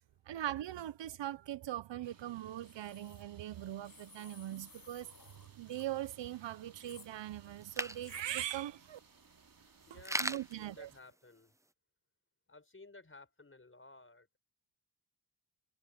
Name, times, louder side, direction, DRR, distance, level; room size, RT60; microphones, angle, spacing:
voice 1, 0.3-5.1 5.6-9.0 9.9-10.9, right 13 dB, 80° right, 0.7 m, -41 dB
sound 1, 2.0-11.0, right 5 dB, 50° right, 3.1 m, -64 dB
sound 2, 2.6-3.2 3.8-5.9 6.8-7.1 8.0-8.3, left 5 dB, 50° left, 7.0 m, -58 dB
sound 3, 3.5-11.7, right 1 dB, 5° right, 0.7 m, -45 dB
voice 2, 9.9-11.6 12.5-14.4, left 3 dB, 30° left, 5.6 m, -55 dB
cardioid pair, 60°, 44 cm